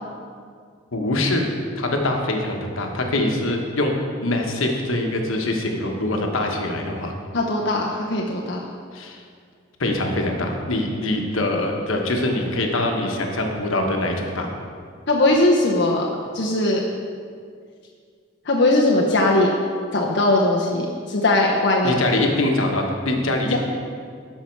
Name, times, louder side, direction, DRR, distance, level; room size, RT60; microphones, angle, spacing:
voice 1, 0.9-1.5 1.8-7.1 8.9-9.2 9.8-14.5 21.8-23.6, left 1 dB, 75° left, 2 dB, 1.2 m, -23 dB
voice 2, 7.3-8.7 15.1-16.1 16.3-16.8 18.5-19.5 19.9-22.0 23.5-23.6, left 2 dB, 55° left, -2 dB, 0.7 m, -19 dB
12.5 x 5.6 x 4.6 m, 2.1 s
head